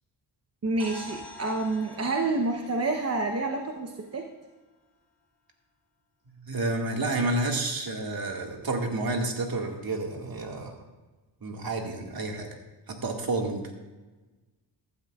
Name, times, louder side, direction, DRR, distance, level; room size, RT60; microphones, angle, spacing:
voice 1, 0.6-4.3, right 2 dB, 30° right, 2 dB, 1.0 m, -28 dB
sound 1, 0.8-4.7, left 2 dB, 5° left, 3.5 m, -47 dB
voice 2, 6.4-10.8 11.4-12.5 12.9-13.6, right 2 dB, 50° right, 2 dB, 2.0 m, -30 dB
15.5 x 12.0 x 2.4 m, 1.2 s
cardioid pair, 90°, 46 cm